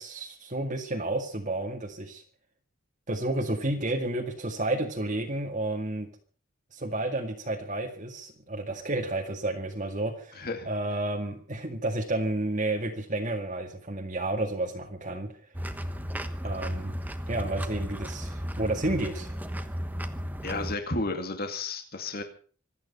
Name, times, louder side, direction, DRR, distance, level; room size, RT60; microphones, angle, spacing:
voice 1, 0.0-2.2 3.1-6.1 6.7-15.3 16.4-16.9 17.3-19.4, right 2 dB, 35° right, 1 dB, 2.0 m, -31 dB
voice 2, 10.3-10.7 20.4-22.2, left 2 dB, 45° left, 5 dB, 2.4 m, -32 dB
sound 1, 15.5-20.7, equal, 10° right, 1.2 m, -34 dB
26.0 x 9.6 x 5.5 m, 0.43 s
head